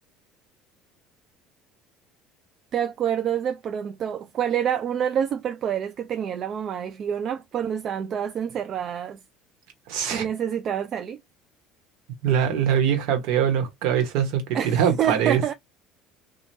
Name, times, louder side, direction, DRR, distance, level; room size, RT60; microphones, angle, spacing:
voice 1, 2.7-9.2 10.1-11.2 14.5-15.5, right 9 dB, 50° right, 0.4 m, -27 dB
voice 2, 9.9-10.3 12.2-15.5, right 8 dB, 70° right, 1.1 m, -23 dB
3.1 x 2.3 x 2.6 m
hypercardioid pair, 70°, 0 cm